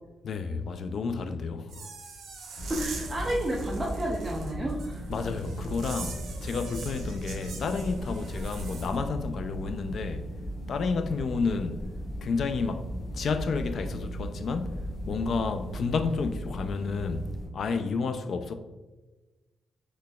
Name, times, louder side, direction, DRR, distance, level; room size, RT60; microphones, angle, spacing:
voice 1, 0.2-1.9 5.1-10.3 10.7-11.9 12.2-18.5, left 4 dB, 55° left, 0.3 m, -31 dB
sound 1, 1.7-9.0, right 5 dB, 75° right, 0.6 m, -43 dB
voice 2, 2.5-5.0, right 1 dB, 15° right, 0.5 m, -31 dB
sound 2, 2.6-17.5, right 1 dB, 75° left, 1.1 m, -37 dB
4.1 x 3.1 x 2.2 m
cardioid pair, 130°, 0 cm